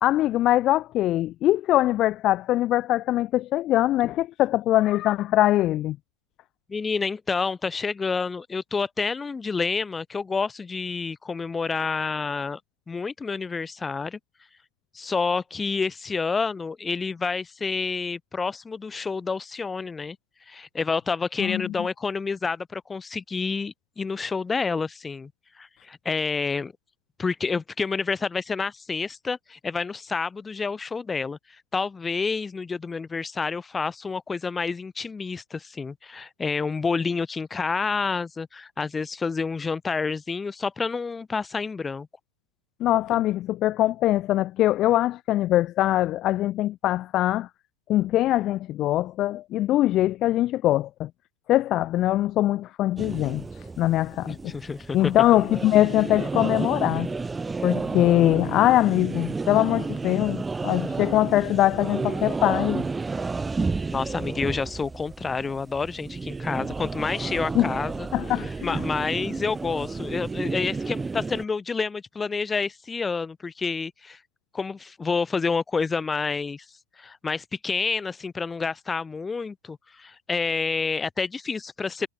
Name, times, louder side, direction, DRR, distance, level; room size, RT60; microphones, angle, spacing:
voice 1, 0.0-6.0 21.4-21.7 42.8-47.5 47.9-51.1 51.5-53.4 53.8-54.4 54.9-57.1 57.6-62.9 67.5-67.7 68.1-68.8, left 14 dB, 35° left, 0.4 m, -22 dB
voice 2, 6.7-12.6 12.9-14.2 14.9-20.2 20.5-25.3 25.6-26.7 27.2-31.4 31.7-42.1 54.3-55.1 63.9-68.1 68.4-74.2 74.5-76.7 77.0-82.1, left 4 dB, 15° left, 1.8 m, -29 dB
sound 1, 53.0-71.4, right 4 dB, 10° right, 1.4 m, -31 dB
figure-of-eight pair, 90°, 0 cm